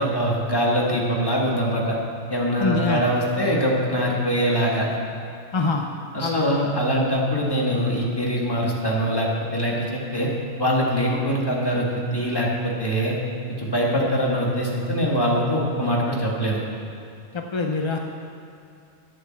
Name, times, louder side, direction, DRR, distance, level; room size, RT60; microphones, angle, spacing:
voice 1, 0.0-2.0 2.3-4.9 6.1-10.3 10.6-13.1 13.6-16.6, equal, 20° left, -3 dB, 1.9 m, -23 dB
voice 2, 2.6-3.0 5.5-5.8 6.2-6.5 17.3-18.0, left 3 dB, 40° left, 3 dB, 0.4 m, -24 dB
10.5 x 8.2 x 7.3 m, 2.6 s
omnidirectional pair, 1.3 m